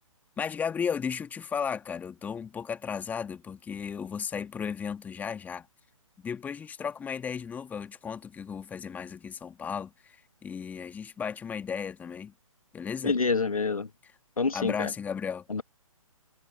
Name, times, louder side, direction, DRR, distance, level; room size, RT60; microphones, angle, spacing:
voice 1, 0.4-5.7 6.2-12.3 12.7-13.2 14.5-15.5, left 7 dB, 10° left, 1.7 m, -35 dB
voice 2, 13.0-13.9 14.4-14.9 15.5-15.6, left 4 dB, 80° left, 1.4 m, -27 dB
figure-of-eight pair, 135°, 18 cm